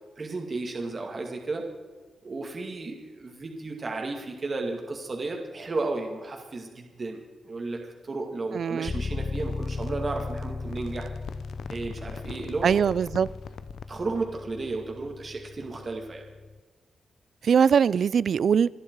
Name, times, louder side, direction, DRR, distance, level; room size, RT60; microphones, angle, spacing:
voice 1, 0.2-1.7 2.2-7.2 7.4-11.1 11.7-12.8 13.9-16.2, right 3 dB, 35° right, 2.2 m, -33 dB
voice 2, 8.5-8.9 12.6-13.3 17.4-18.7, right 7 dB, 60° right, 0.4 m, -21 dB
sound 1, 8.8-16.6, left 4 dB, 30° left, 0.4 m, -36 dB
sound 2, 8.9-14.0, left 7 dB, 75° left, 0.7 m, -44 dB
27.0 x 11.0 x 4.7 m
wide cardioid pair, 140°, 0 cm